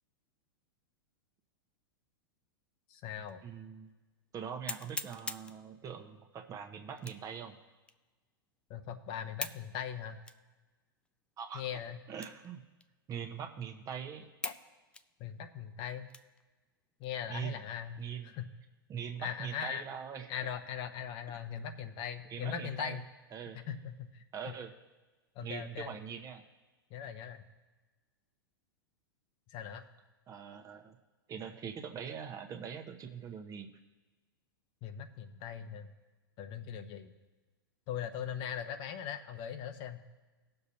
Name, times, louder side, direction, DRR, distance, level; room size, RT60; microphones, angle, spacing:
voice 1, 2.9-3.4 8.7-10.2 11.5-12.0 14.4-14.5 15.2-16.1 17.0-18.5 19.2-19.8 20.3-23.0 23.7-24.2 25.3-25.9 26.9-27.4 29.5-29.8 34.8-35.9 36.4-37.1 37.9-40.0, left 9 dB, 45° left, 8 dB, 0.9 m, -40 dB
sound 1, 3.3-3.4 3.9-4.0 4.7-5.6 7.0-7.4 7.9-8.0 9.4-9.7 10.2-10.4 11.1-11.2 12.1-12.5 12.8-12.9 13.6-13.7 14.4-14.7 14.9-16.4 16.9-17.1 17.6-18.0, left 3 dB, 10° left, 0.4 m, -42 dB
voice 2, 3.4-3.9 4.3-7.5 11.4-11.6 12.1-12.6 13.1-14.3 17.3-17.6 18.0-18.3 18.9-20.3 22.3-23.0 23.3-23.6 24.3-24.7 25.4-26.4 30.3-31.0 31.3-33.7, right 7 dB, 30° right, 5 dB, 1.0 m, -42 dB
18.5 x 6.7 x 2.8 m, 1.2 s
hypercardioid pair, 105°, 12 cm